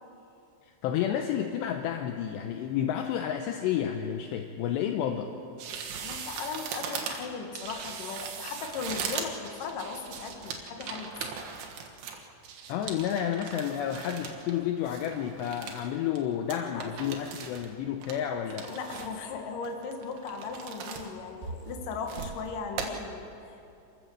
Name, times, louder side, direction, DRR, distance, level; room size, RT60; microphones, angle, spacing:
voice 1, 0.8-5.3 12.7-18.7, left 9 dB, 80° left, 5 dB, 2.7 m, -30 dB
sound 1, 5.6-14.6 14.8-15.8 16.2-16.3 16.5-17.7 18.0-19.2 19.6-21.1 21.4-22.4 22.8-22.9, right 6 dB, 65° right, 3.2 m, -39 dB
voice 2, 6.0-11.1 16.7-17.2 18.5-23.7, left 5 dB, 55° left, 4 dB, 2.7 m, -38 dB
27.0 x 14.0 x 7.7 m, 2.7 s
omnidirectional pair, 5.5 m